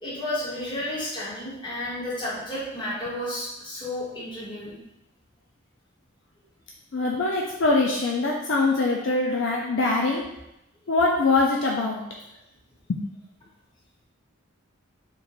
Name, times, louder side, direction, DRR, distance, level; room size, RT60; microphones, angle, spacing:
voice 1, 0.0-4.8, left 1 dB, 20° left, -9 dB, 1.3 m, -32 dB
voice 2, 6.9-10.2 10.9-12.0 12.9-13.0, left 3 dB, 60° left, -1 dB, 0.4 m, -23 dB
3.0 x 2.5 x 3.9 m, 0.88 s
head